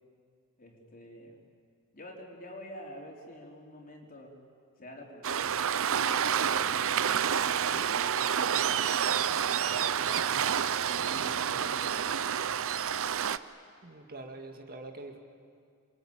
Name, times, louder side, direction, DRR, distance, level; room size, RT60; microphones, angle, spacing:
voice 1, 0.6-1.4 1.9-4.4 4.8-8.8 9.4-10.0 10.8-12.7, equal, 40° left, 0 dB, 4.3 m, -48 dB
Waves surf, 5.2-13.4, right 8 dB, 65° right, 0.7 m, -28 dB
voice 2, 9.8-10.5 13.8-15.2, right 2 dB, 45° right, 4 dB, 2.2 m, -45 dB
27.5 x 23.0 x 8.9 m, 2.2 s
head